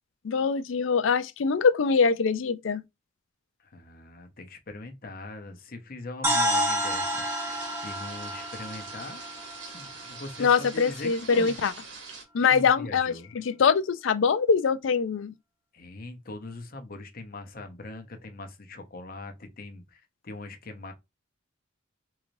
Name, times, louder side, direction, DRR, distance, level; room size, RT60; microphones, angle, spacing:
voice 1, 0.2-2.8 10.4-11.7 12.3-15.3, left 5 dB, 75° left, 0.4 m, -23 dB
voice 2, 3.6-7.6 7.8-9.2 9.7-11.5 12.4-13.4 15.7-20.9, left 2 dB, 45° left, 0.8 m, -41 dB
sound 1, 6.2-10.2, equal, 15° right, 0.8 m, -29 dB
sound 2, 6.9-12.2, right 4 dB, 70° right, 1.2 m, -44 dB
3.8 x 3.2 x 2.6 m
head